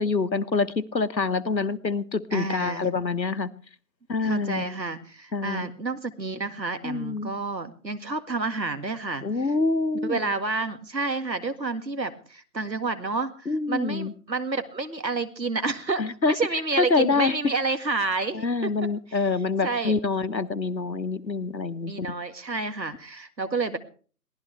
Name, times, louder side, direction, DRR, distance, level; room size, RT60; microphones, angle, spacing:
voice 1, 0.0-3.5 4.1-4.7 5.3-5.7 6.8-7.3 9.2-10.2 13.5-14.1 16.0-16.3 16.8-17.3 18.3-22.1, left 4 dB, 90° left, 13 dB, 1.2 m, -26 dB
voice 2, 2.3-2.9 4.2-9.5 10.0-18.7 19.1-19.2 19.6-20.0 21.9-23.8, right 3 dB, 80° right, 9 dB, 2.0 m, -30 dB
22.5 x 17.0 x 3.3 m, 0.41 s
figure-of-eight pair, 160°, 50 cm